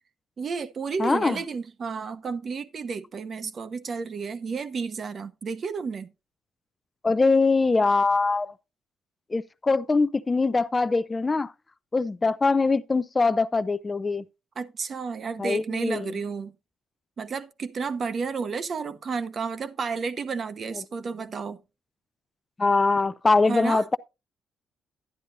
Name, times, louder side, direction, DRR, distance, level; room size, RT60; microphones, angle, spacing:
voice 1, 0.4-6.1 14.6-16.5 17.2-21.6 23.5-23.9, right 5 dB, 50° right, 0.8 m, -32 dB
voice 2, 1.0-1.4 7.0-8.5 9.3-11.5 11.9-14.2 15.4-16.2 22.6-24.0, left 3 dB, 25° left, 0.4 m, -23 dB
11.0 x 9.9 x 2.6 m
cardioid pair, 90°, 0 cm